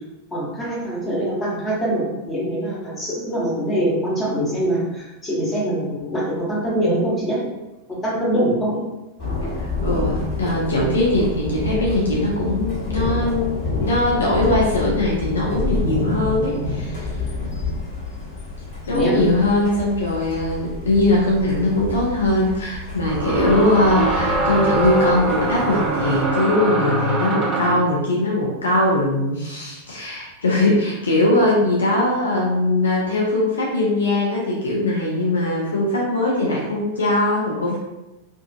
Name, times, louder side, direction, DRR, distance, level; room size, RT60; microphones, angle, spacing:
voice 1, 0.3-7.4 8.0-8.8 18.9-19.2, right 1 dB, 20° left, -6 dB, 1.0 m, -23 dB
Thunder, 9.2-26.2, left 3 dB, 40° left, 1.3 m, -28 dB
voice 2, 9.6-17.1 18.9-37.8, left 1 dB, 70° left, -4 dB, 0.5 m, -21 dB
sound 1, 21.1-21.2 23.1-27.9, right 2 dB, 25° right, 0.6 m, -23 dB
2.5 x 2.4 x 2.3 m, 1.0 s
figure-of-eight pair, 90°, 0 cm